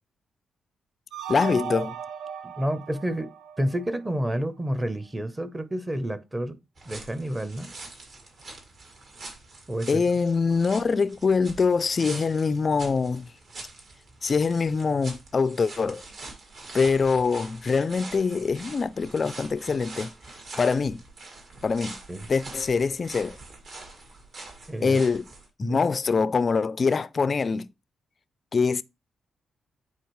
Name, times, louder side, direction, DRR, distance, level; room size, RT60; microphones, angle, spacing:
sound 1, 1.1-4.2, right 7 dB, 80° right, 0.5 m, -37 dB
voice 1, 1.3-2.0 9.9-13.3 14.2-16.0 16.7-20.1 20.6-21.0 21.6-22.0 22.3-23.4 24.8-25.3 25.6-27.7 28.5-28.8, left 5 dB, 35° left, 0.3 m, -24 dB
voice 2, 2.4-3.3 3.6-6.6 6.9-7.7 9.7-10.0 22.1-22.3 24.7-25.0 25.6-25.9, right 1 dB, 15° right, 0.7 m, -29 dB
sound 2, 6.8-25.5, right 3 dB, 60° right, 2.0 m, -44 dB
9.4 x 4.0 x 3.1 m
cardioid pair, 120°, 0 cm